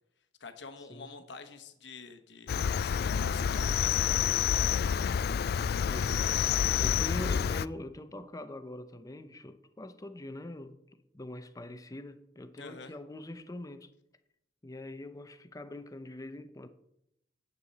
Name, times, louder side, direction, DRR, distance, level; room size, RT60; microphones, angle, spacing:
voice 1, 0.4-4.7 12.6-12.9, left 4 dB, 75° left, 1.1 m, -47 dB
Cricket, 2.5-7.7, left 8 dB, 60° left, 0.3 m, -28 dB
voice 2, 5.9-6.2 6.8-13.9 14.6-16.7, left 1 dB, 20° left, 0.7 m, -43 dB
10.0 x 8.3 x 4.1 m
head